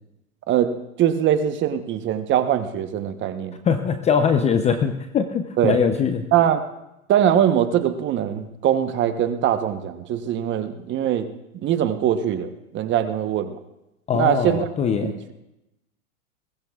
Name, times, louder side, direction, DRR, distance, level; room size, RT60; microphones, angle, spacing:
voice 1, 0.5-3.6 5.6-5.8 6.3-6.6 7.1-11.3 11.6-13.6 14.1-14.7 15.0-15.3, right 10 dB, 25° right, 10 dB, 1.0 m, -22 dB
voice 2, 3.7-6.3 14.1-15.1, left 6 dB, 15° left, 8 dB, 0.6 m, -21 dB
21.5 x 18.5 x 2.4 m, 0.91 s
hypercardioid pair, 125°, 43 cm